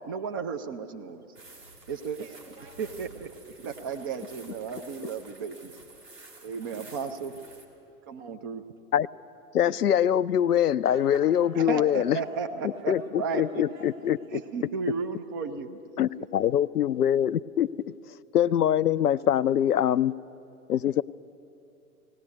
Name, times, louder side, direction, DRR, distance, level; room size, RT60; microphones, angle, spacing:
voice 1, 0.1-1.3 1.9-2.2 2.8-3.3 3.6-5.7 6.4-7.4 8.1-8.6 11.7-13.6 14.3-15.8 16.2-16.3, right 5 dB, 15° right, 6 dB, 0.4 m, -34 dB
sound 1, 1.3-7.6, right 3 dB, 85° right, 3.0 m, -51 dB
voice 2, 1.5-3.3 3.8-4.8 10.8-11.2 12.0-12.4 12.7-14.3, right 4 dB, 55° right, 0 dB, 5.4 m, -52 dB
voice 3, 9.5-12.2 12.9-14.2 16.0-17.7 18.3-20.1 20.7-21.0, left 10 dB, 75° left, 17 dB, 0.5 m, -23 dB
18.5 x 17.5 x 8.3 m, 2.8 s
figure-of-eight pair, 105°, 46 cm